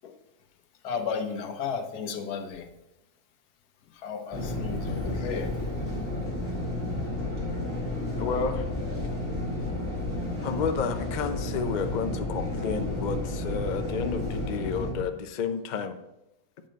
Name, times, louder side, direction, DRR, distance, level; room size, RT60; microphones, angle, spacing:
voice 1, 0.8-2.7 3.9-5.5, left 6 dB, 90° left, 7 dB, 1.4 m, -33 dB
sound 1, 4.3-14.9, left 1 dB, 10° left, 2.5 m, -31 dB
voice 2, 8.2-8.6 10.4-16.0, left 5 dB, 55° left, 8 dB, 0.5 m, -31 dB
8.7 x 5.6 x 5.2 m, 0.93 s
omnidirectional pair, 1.6 m